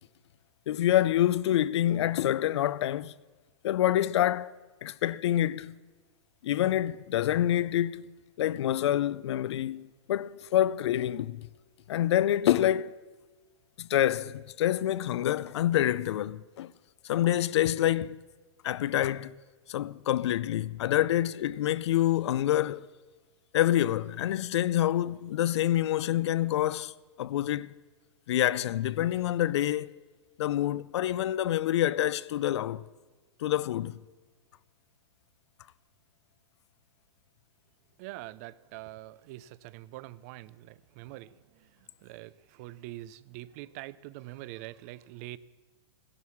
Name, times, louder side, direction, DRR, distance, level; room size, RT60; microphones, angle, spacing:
voice 1, 0.7-3.1 3.6-4.5 4.8-5.8 6.4-8.1 8.4-11.5 11.9-13.0 13.8-16.7 17.0-18.2 18.6-19.4 19.7-22.9 23.5-26.9 27.2-27.7 28.3-29.9 30.4-32.8 33.4-34.0, left 12 dB, 65° left, 0.5 m, -27 dB
voice 2, 38.0-45.4, right 16 dB, 35° right, 0.4 m, -44 dB
15.5 x 11.0 x 7.1 m
supercardioid pair, 160°, 15 cm